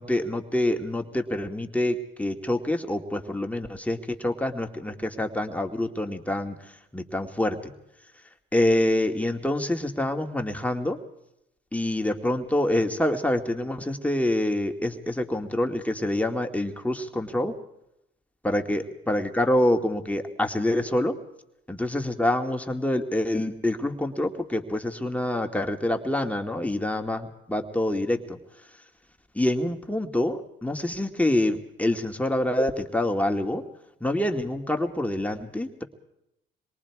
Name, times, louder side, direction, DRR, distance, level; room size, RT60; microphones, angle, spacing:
voice 1, 0.0-7.7 8.5-11.0 11.7-17.5 18.4-21.2 21.7-28.4 29.3-33.6 34.0-35.8, left 1 dB, 5° left, 3 dB, 2.2 m, -26 dB
27.0 x 22.0 x 4.8 m, 0.83 s
cardioid pair, 90°, 20 cm